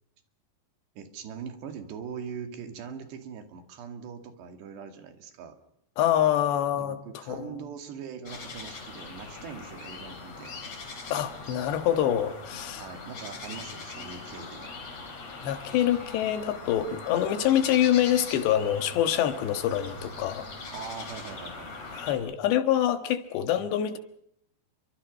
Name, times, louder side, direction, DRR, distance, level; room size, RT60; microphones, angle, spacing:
voice 1, 1.0-5.6 6.8-10.6 12.8-14.7 20.7-21.8, right 6 dB, 85° right, 4.4 m, -41 dB
voice 2, 6.0-7.0 7.3-7.5 11.1-12.9 15.4-20.5 21.9-24.0, left 11 dB, 90° left, 3.8 m, -25 dB
sound 1, 8.3-22.2, left 3 dB, 40° left, 4.8 m, -41 dB
29.5 x 24.0 x 5.4 m
omnidirectional pair, 4.8 m